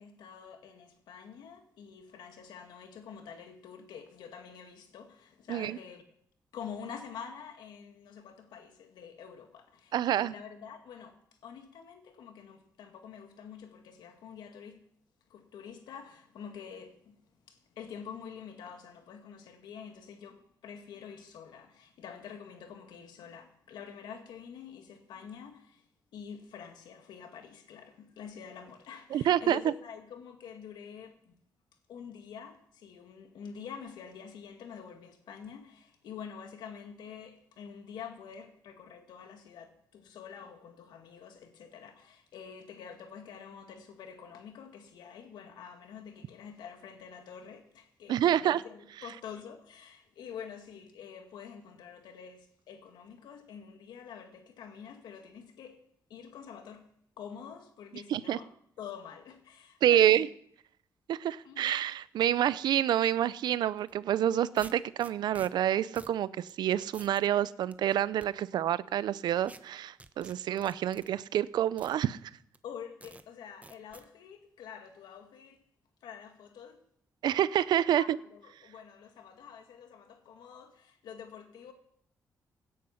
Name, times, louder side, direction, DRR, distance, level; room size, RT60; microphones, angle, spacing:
voice 1, 0.0-6.1 6.5-14.9 15.3-31.4 31.9-55.8 56.1-56.9 57.2-58.5 58.8-60.3 61.4-61.7 70.5-70.6 72.6-75.6 76.0-76.8 77.9-81.7, left 7 dB, 90° left, 2.0 m, -47 dB
voice 2, 9.9-10.3 29.1-29.6 48.1-48.6 58.1-58.4 59.8-60.3 61.1-72.2 77.2-78.2, right 11 dB, 85° right, 0.6 m, -27 dB
sound 1, 63.8-63.9 64.6-65.5 65.9-66.2 66.5-66.6 66.9-67.2 67.7-68.3 69.4-69.6 70.0-71.1 71.8-72.0 72.5-72.6 73.0-73.2 73.6-74.1, right 2 dB, 20° right, 1.0 m, -50 dB
17.0 x 10.0 x 5.8 m
cardioid pair, 80°, 7 cm